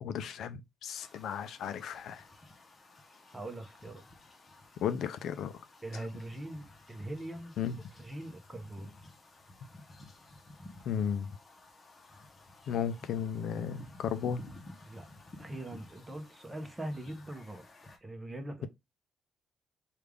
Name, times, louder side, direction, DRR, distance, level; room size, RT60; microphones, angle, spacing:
voice 1, 0.0-2.3 4.8-5.6 7.6-7.8 10.9-11.4 12.7-14.4, left 8 dB, 75° left, 0.4 m, -34 dB
sound 1, 1.0-18.0, left 2 dB, 35° left, 0.9 m, -54 dB
voice 2, 3.3-4.1 5.8-7.6 8.0-8.9 14.9-15.1 15.4-17.6 18.0-18.7, right 1 dB, 15° right, 0.9 m, -42 dB
3.3 x 2.4 x 3.3 m
cardioid pair, 90°, 0 cm